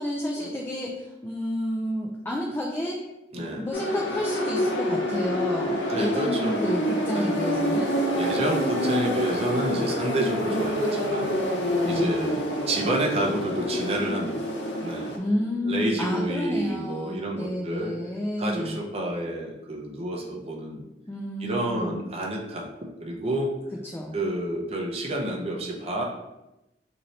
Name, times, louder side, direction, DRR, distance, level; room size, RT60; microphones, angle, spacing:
voice 1, 0.0-3.0 3.3-7.9 11.8-12.1 15.2-18.8 21.1-22.1 23.8-24.2, left 1 dB, 15° left, -2 dB, 0.4 m, -30 dB
voice 2, 3.3-3.7 5.9-6.6 7.1-7.3 8.2-11.3 11.9-14.5 14.8-15.2 15.6-18.0 18.4-20.8 21.4-22.7 23.0-23.5 24.1-26.0, right 1 dB, 35° right, -1 dB, 0.6 m, -29 dB
sound 1, 3.7-15.2, equal, 85° left, 0.7 m, -27 dB
4.0 x 2.7 x 3.1 m, 0.95 s
head